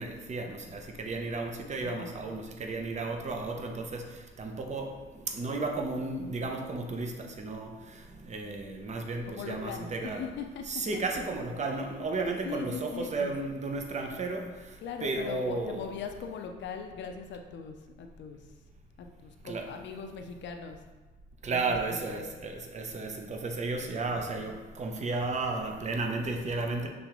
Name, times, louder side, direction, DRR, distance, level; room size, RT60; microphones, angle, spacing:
voice 1, 0.0-4.0 4.4-4.9 5.3-10.3 10.6-14.5 15.0-15.9 19.4-19.7 21.4-26.9, right 3 dB, 35° right, 3 dB, 0.7 m, -33 dB
voice 2, 1.8-2.2 9.2-10.6 10.9-11.0 12.4-13.3 14.8-18.5 19.0-20.8 21.5-22.4, left 6 dB, 65° left, 5 dB, 0.5 m, -40 dB
5.4 x 3.3 x 3.0 m, 1.2 s
cardioid pair, 90°, 20 cm